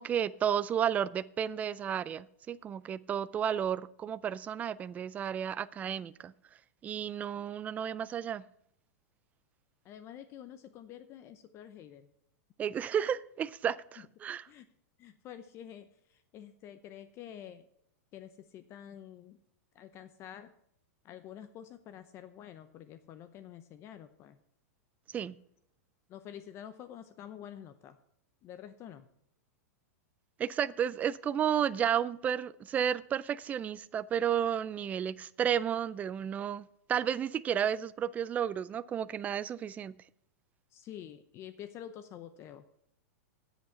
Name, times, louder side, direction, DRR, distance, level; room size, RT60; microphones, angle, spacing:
voice 1, 0.0-6.3 6.8-8.4 12.6-14.4 25.1-25.4 30.4-39.9, right 9 dB, 20° right, 17 dB, 0.3 m, -32 dB
voice 2, 9.8-12.1 14.0-14.1 14.5-14.7 15.0-17.7 18.1-19.4 19.7-20.5 21.0-24.4 26.1-28.0 28.4-29.1 40.7-42.6, left 10 dB, 30° left, 11 dB, 0.7 m, -48 dB
9.2 x 8.0 x 5.7 m, 0.74 s
supercardioid pair, 140°, 8 cm